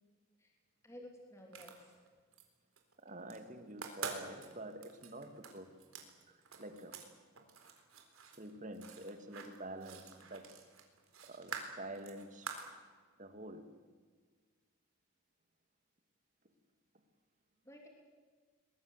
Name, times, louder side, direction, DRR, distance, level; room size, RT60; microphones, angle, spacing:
voice 1, 0.8-2.0 17.6-17.9, left 1 dB, 15° left, 1 dB, 3.0 m, -54 dB
sound 1, 1.4-2.4 2.8-3.4 3.7-7.1 7.4-12.7, right 5 dB, 80° right, 4.1 m, -47 dB
voice 2, 3.0-5.7 6.3-7.0 8.4-10.6 11.2-12.5 13.2-13.7, right 1 dB, 35° right, 8 dB, 2.3 m, -48 dB
23.0 x 22.0 x 8.2 m, 1.5 s
head